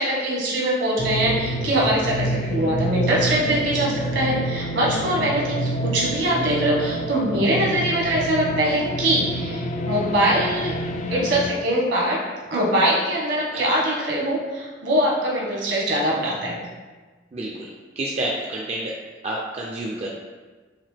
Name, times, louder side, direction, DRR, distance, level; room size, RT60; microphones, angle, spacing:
voice 1, 0.0-10.7 11.1-12.2 12.5-16.6, right 1 dB, 70° right, -4 dB, 1.4 m, -22 dB
sound 1, 1.0-11.5, right 1 dB, 40° left, 0.3 m, -28 dB
voice 2, 17.3-17.7 18.0-18.9 19.2-20.1, right 1 dB, 35° right, -2 dB, 0.4 m, -29 dB
5.8 x 2.5 x 3.3 m, 1.3 s
head